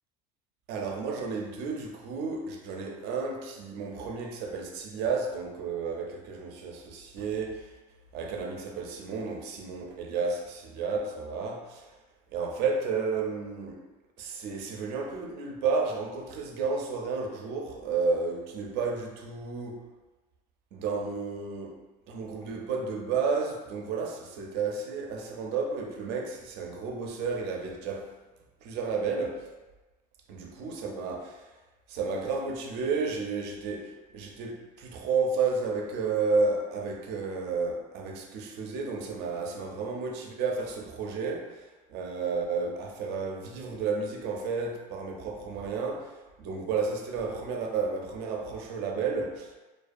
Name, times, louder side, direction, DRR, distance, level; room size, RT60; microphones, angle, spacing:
voice 1, 0.7-7.7 8.1-11.9 12.3-13.8 14.2-19.8 20.7-21.8 22.1-28.1 28.6-29.5 30.3-31.3 31.9-49.6, right 4 dB, 60° right, 2 dB, 0.5 m, -32 dB
2.3 x 2.2 x 2.5 m, 1.1 s
supercardioid pair, 115°, 20 cm